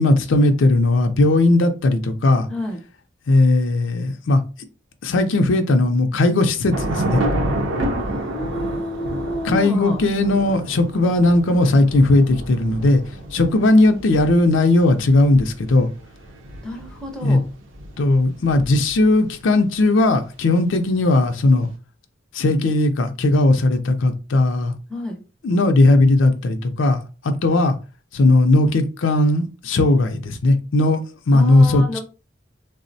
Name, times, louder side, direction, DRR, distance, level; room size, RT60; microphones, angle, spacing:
voice 1, 0.0-2.5 3.3-4.4 5.0-7.2 9.4-13.0 13.3-15.9 17.2-17.4 18.0-21.7 22.3-24.7 25.4-27.8 28.1-31.0 31.3-32.0, left 2 dB, 80° left, 7 dB, 0.5 m, -17 dB
voice 2, 2.5-2.8 8.0-10.0 16.6-17.4 24.9-25.2 31.3-32.0, left 1 dB, 5° left, 1 dB, 0.5 m, -30 dB
Thunder / Rain, 6.7-19.2, right 1 dB, 80° right, 0.6 m, -30 dB
3.4 x 2.0 x 2.6 m, 0.32 s
head